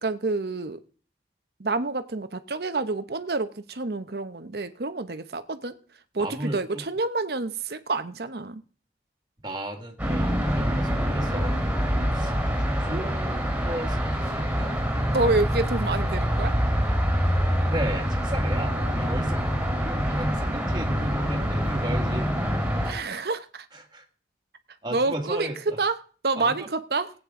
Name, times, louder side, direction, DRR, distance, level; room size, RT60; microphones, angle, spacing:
voice 1, 0.0-0.8 1.6-5.8 6.1-8.6 15.1-16.5 22.8-23.7 24.9-25.9 26.2-27.1, right 3 dB, 60° right, 0.9 m, -28 dB
voice 2, 6.2-6.9 9.4-12.3 12.6-14.7 17.7-19.5 19.8-22.3 23.7-24.0 24.8-25.8 26.4-26.7, right 1 dB, 25° right, 1.9 m, -35 dB
sound 1, 10.0-22.9, equal, 5° right, 3.3 m, -25 dB
18.0 x 8.7 x 3.7 m
head